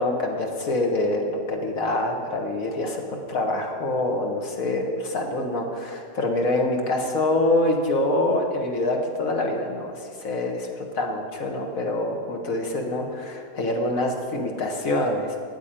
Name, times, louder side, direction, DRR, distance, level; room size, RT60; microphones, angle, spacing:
voice 1, 0.0-15.4, left 2 dB, 70° left, 2 dB, 1.8 m, -25 dB
9.1 x 8.3 x 8.9 m, 2.3 s
omnidirectional pair, 1.5 m